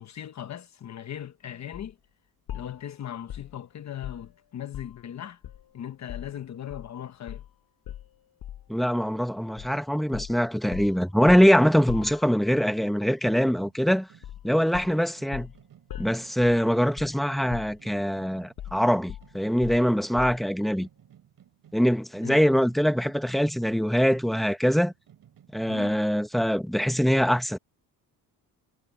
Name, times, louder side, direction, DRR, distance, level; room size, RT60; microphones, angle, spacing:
voice 1, 0.0-2.0 2.5-5.4 5.7-7.4 22.2-22.4 25.7-26.0, left 10 dB, 45° left, 1.1 m, -38 dB
sound 1, 1.7-1.9 2.5-5.1 5.4-6.9 7.3-7.5 7.9-8.8 9.6-9.8 10.1-12.7 14.2-14.5 14.7-17.2 17.5-18.1 18.6-20.6, left 11 dB, 60° left, 7.1 m, -41 dB
voice 2, 8.7-14.1 14.4-15.5 16.0-20.9 21.7-24.9 25.5-27.6, equal, ahead, 0.9 m, -23 dB
sound 2, 13.6-20.5 20.8-26.4, right 10 dB, 55° right, 5.5 m, -57 dB
cardioid pair, 140°, 39 cm